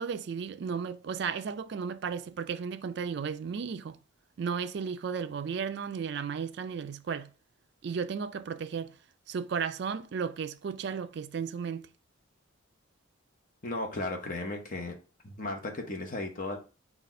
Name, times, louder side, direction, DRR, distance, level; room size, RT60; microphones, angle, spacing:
voice 1, 0.0-4.0 4.4-7.3 7.8-9.0 9.3-11.9, right 6 dB, 55° right, 0.3 m, -34 dB
voice 2, 13.6-15.0 15.2-16.6, left 2 dB, 40° left, 0.9 m, -35 dB
4.1 x 2.4 x 4.2 m
head